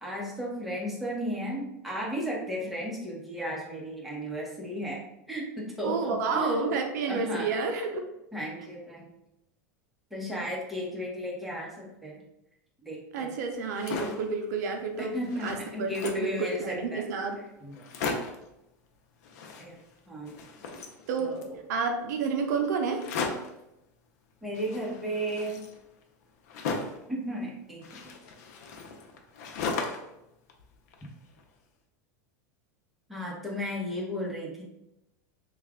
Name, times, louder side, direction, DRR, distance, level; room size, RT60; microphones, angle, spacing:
voice 1, 0.0-5.0 5.3-6.7 7.1-7.5 8.3-9.1 10.1-12.2 12.8-13.3 15.0-17.0 17.6-17.7 19.6-19.8 20.1-20.4 21.2-21.5 24.4-25.7 27.1-28.1 33.1-34.6, equal, ahead, -4 dB, 1.0 m, -34 dB
voice 2, 5.8-8.1 13.1-17.4 21.1-21.4 21.7-23.1, right 4 dB, 75° right, 4 dB, 0.5 m, -30 dB
sound 1, 13.6-14.3 14.8-14.9 15.1-16.3 17.0-17.1 17.3-17.4 17.7-18.5 19.2-20.0 20.2-21.6 22.9-23.6 24.5-27.1 27.8-30.2 30.5-31.4, left 4 dB, 70° left, 0.6 m, -36 dB
3.1 x 2.4 x 3.5 m, 0.87 s
supercardioid pair, 120°, 9 cm